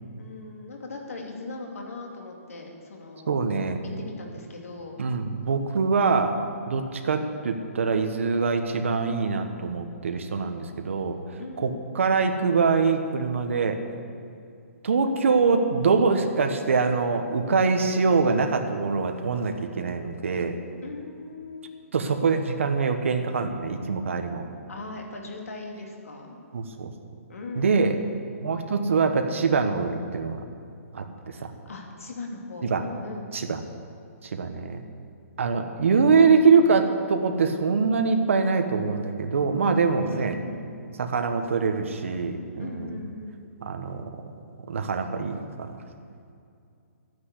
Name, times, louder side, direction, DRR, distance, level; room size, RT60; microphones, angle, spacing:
voice 1, 0.2-3.3 4.0-5.0 11.4-11.8 20.8-21.8 24.7-26.4 27.3-27.8 31.3-33.4 40.0-40.7 42.6-43.5, left 3 dB, 70° left, 1 dB, 2.7 m, -39 dB
voice 2, 3.3-3.8 5.0-6.3 6.7-11.2 11.6-13.8 14.8-20.6 21.9-24.5 26.5-26.9 27.5-27.9 28.4-30.5 30.9-31.5 32.6-32.8 33.3-33.6 34.2-34.8 35.4-40.4 41.0-43.0 43.6-44.3 44.7-45.7, right 4 dB, 55° right, 5 dB, 1.3 m, -24 dB
12.0 x 9.6 x 8.4 m, 2.4 s
hypercardioid pair, 180°, 8 cm